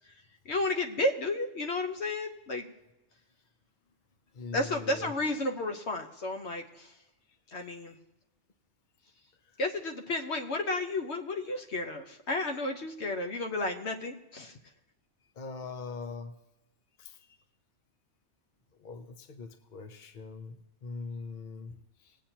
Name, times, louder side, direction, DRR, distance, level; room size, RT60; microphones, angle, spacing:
voice 1, 0.4-2.7 4.5-6.9 7.5-7.9 9.6-14.5, left 2 dB, 75° left, 4 dB, 1.3 m, -32 dB
voice 2, 4.3-5.1 7.5-7.6 7.9-8.0 15.4-16.3 17.0-17.3 18.8-22.2, left 4 dB, 50° left, 7 dB, 1.0 m, -42 dB
20.0 x 8.6 x 2.9 m, 0.98 s
omnidirectional pair, 1.2 m